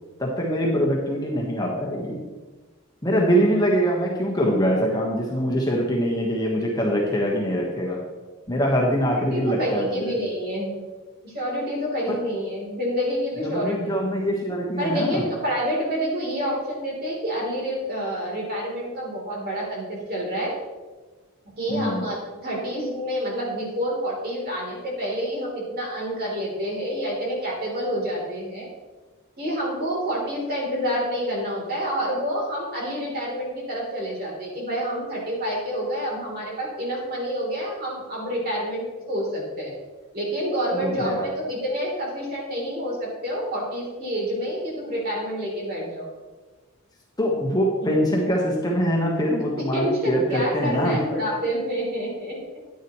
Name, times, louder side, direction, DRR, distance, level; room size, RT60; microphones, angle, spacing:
voice 1, 0.2-2.2 3.0-8.0 8.5-10.1 12.1-12.2 13.4-15.2 21.7-22.0 40.8-41.2 47.2-51.0, equal, 20° left, -2 dB, 1.3 m, -23 dB
voice 2, 9.0-10.7 11.2-14.0 14.8-20.5 21.6-28.7 29.4-39.7 40.1-46.1 47.8-47.9 49.7-52.4, equal, 45° right, -3 dB, 3.5 m, -28 dB
10.5 x 10.0 x 3.1 m, 1.3 s
head